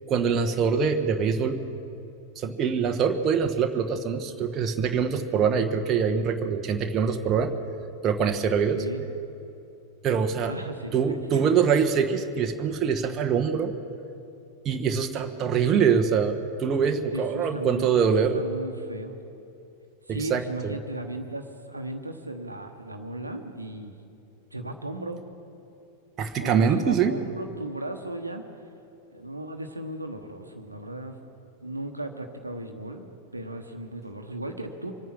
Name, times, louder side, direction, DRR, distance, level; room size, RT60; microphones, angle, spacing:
voice 1, 0.1-1.6 2.4-7.5 8.0-8.8 10.0-10.5 10.9-13.7 14.6-18.4 20.2-20.7 26.2-27.1, right 6 dB, 30° right, 4 dB, 1.1 m, -24 dB
voice 2, 10.5-11.3 15.7-16.0 17.1-17.9 18.3-19.2 20.1-24.1 24.5-25.2 26.4-28.4 29.1-31.2 31.6-34.9, right 1 dB, 85° right, 5 dB, 1.1 m, -36 dB
25.0 x 9.3 x 6.2 m, 2.7 s
figure-of-eight pair, 90°, 0 cm